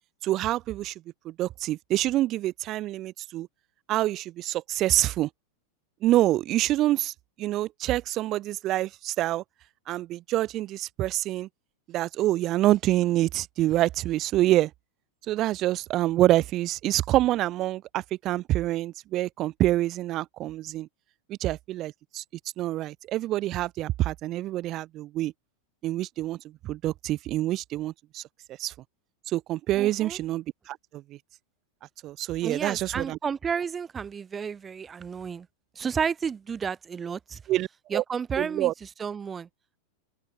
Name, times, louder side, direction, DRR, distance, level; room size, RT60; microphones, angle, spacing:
voice 1, 0.2-0.9 1.2-3.5 3.9-5.3 6.0-7.1 7.4-9.4 9.9-11.5 11.9-14.7 15.3-20.9 21.3-22.2 22.6-25.3 25.8-26.4 26.6-28.2 28.6-28.7 29.3-31.2 32.0-33.2 37.5-38.0 38.4-38.7, right 15 dB, 35° right, 0.5 m, -26 dB
voice 2, 29.7-30.2 32.4-35.5 35.7-37.4 37.9-39.5, right 6 dB, 20° right, 1.2 m, -32 dB
open air
figure-of-eight pair, 90°, 0 cm